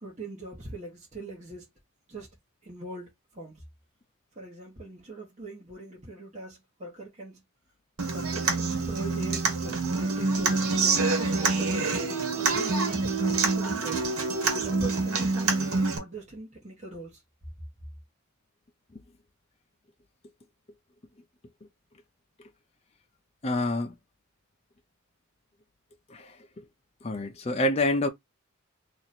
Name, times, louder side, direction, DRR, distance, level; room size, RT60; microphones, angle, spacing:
voice 1, 0.0-1.7 2.1-2.3 2.6-3.6 4.3-7.4 8.1-10.6 11.1-11.9 12.3-14.1 14.6-17.2, right 2 dB, 35° right, 1.3 m, -41 dB
Human voice / Acoustic guitar, 8.0-16.0, right 3 dB, 85° right, 1.3 m, -26 dB
voice 2, 23.4-23.9 26.1-26.6 27.0-28.1, left 1 dB, 30° left, 0.6 m, -28 dB
3.0 x 2.5 x 4.1 m
head